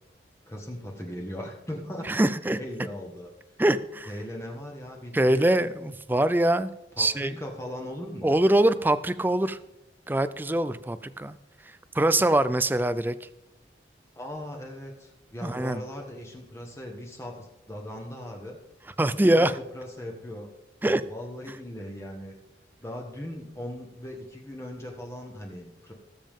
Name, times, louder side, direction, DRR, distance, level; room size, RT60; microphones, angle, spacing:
voice 1, 0.5-2.3 2.5-3.3 4.1-5.5 7.0-8.3 14.2-18.6 19.3-19.5 19.7-20.5 21.1-22.3 22.8-25.9, left 1 dB, 15° left, 1 dB, 1.3 m, -38 dB
voice 2, 2.0-2.6 3.6-4.1 5.1-6.7 7.0-7.3 8.2-9.6 10.1-11.3 11.9-13.3 15.4-15.8 19.0-19.5 20.8-21.0, right 1 dB, 10° right, 14 dB, 0.3 m, -23 dB
19.0 x 7.2 x 3.6 m, 0.96 s
head